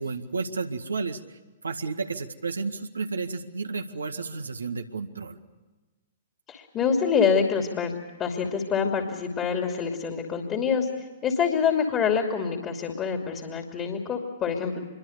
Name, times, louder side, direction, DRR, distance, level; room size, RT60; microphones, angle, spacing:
voice 1, 0.0-5.4, right 4 dB, 75° right, 6 dB, 1.8 m, -32 dB
voice 2, 6.5-7.9 8.2-10.9 11.2-14.8, left 6 dB, 25° left, 3 dB, 2.9 m, -26 dB
26.0 x 23.0 x 6.6 m, 1.2 s
figure-of-eight pair, 110°, 0 cm